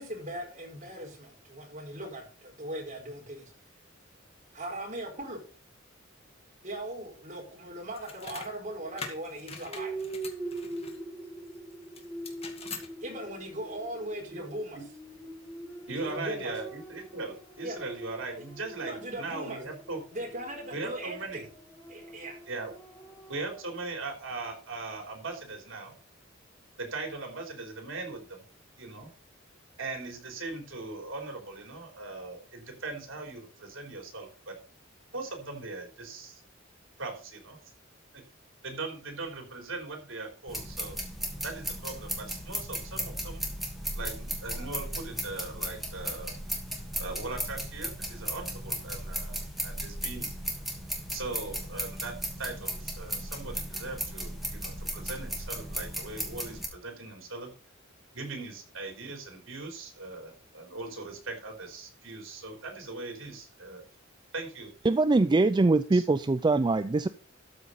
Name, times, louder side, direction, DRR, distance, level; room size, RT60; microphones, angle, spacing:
voice 1, 0.0-3.5 4.5-5.4 6.6-10.1 13.0-14.9 16.0-16.5 17.6-17.8 18.8-19.7 20.1-21.4 21.9-22.4, right 1 dB, 40° right, 0 dB, 4.5 m, -39 dB
sound 1, 7.9-8.5 9.0-11.0 11.9-12.9, left 4 dB, 30° left, 2.1 m, -42 dB
sound 2, 9.7-23.9, right 2 dB, 15° left, 3.4 m, -43 dB
voice 2, 15.9-20.0 20.7-21.4 22.5-22.7 23.3-25.9 26.8-28.4 28.8-29.1 29.8-34.5 35.1-36.4 37.0-37.6 38.1-38.2 38.6-41.0 41.4-43.4 44.0-46.3 47.0-50.3 51.1-57.5 58.1-63.8 64.3-64.7 65.9-66.0, right 3 dB, 75° right, 3 dB, 3.5 m, -39 dB
sound 3, 40.5-56.7, equal, ahead, 2.5 m, -36 dB
voice 3, 64.8-67.1, right 3 dB, 25° right, 12 dB, 0.4 m, -23 dB
13.0 x 5.4 x 5.6 m, 0.40 s
head